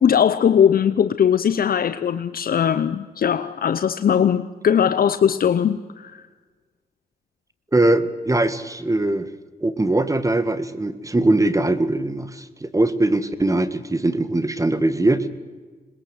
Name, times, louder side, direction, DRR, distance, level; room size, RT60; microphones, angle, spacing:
voice 1, 0.0-6.3, left 8 dB, 65° left, 0.7 m, -19 dB
voice 2, 7.7-9.3 9.6-15.3, right 2 dB, 20° right, 1.6 m, -21 dB
21.0 x 21.0 x 8.0 m
cardioid pair, 75°, 16 cm